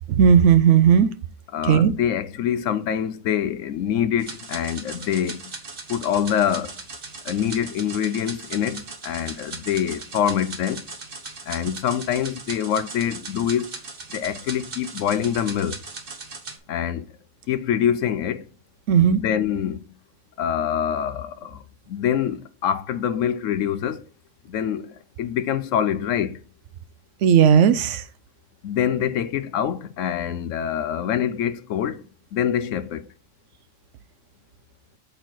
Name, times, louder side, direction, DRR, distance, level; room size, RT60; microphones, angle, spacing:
voice 1, 0.1-1.1 1.7-1.9 18.9-19.2 27.2-28.0, right 8 dB, 70° right, 0.9 m, -15 dB
voice 2, 1.5-5.5 5.9-6.7 7.2-10.9 11.5-13.7 14.1-15.8 16.7-17.1 17.5-18.5 19.0-19.8 20.4-24.1 24.5-26.4 28.6-32.0 32.3-33.1, left 9 dB, 70° left, 0.9 m, -25 dB
sound 1, 4.2-16.6, right 4 dB, 45° right, 1.3 m, -38 dB
8.2 x 4.3 x 4.6 m
omnidirectional pair, 1.4 m